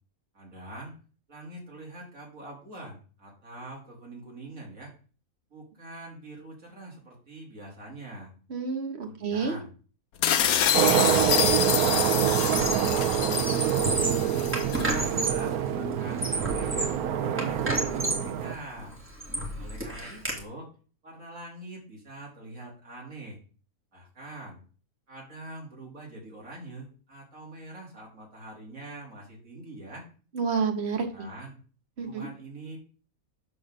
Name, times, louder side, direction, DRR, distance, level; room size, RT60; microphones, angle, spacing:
voice 1, 0.3-0.9 1.3-4.9 5.5-8.3 9.0-9.7 10.3-11.2 13.9-18.9 19.6-20.7 21.0-23.4 23.9-24.6 25.1-30.1 31.1-31.6 32.0-32.8, right 2 dB, 65° right, -2 dB, 3.4 m, -44 dB
voice 2, 8.5-9.5 30.3-31.3 32.0-32.3, right 5 dB, 50° right, 5 dB, 1.5 m, -29 dB
sound 1, 10.2-14.9, left 9 dB, 80° left, 1.2 m, -27 dB
sound 2, 10.7-18.6, right 9 dB, 85° right, 1.2 m, -26 dB
Squeak, 11.1-11.4 11.7-12.9 13.3-15.5 16.0-17.0 17.4-18.3 18.8-20.4, right 1 dB, 10° right, 2.0 m, -32 dB
7.7 x 4.0 x 6.4 m, 0.39 s
omnidirectional pair, 1.5 m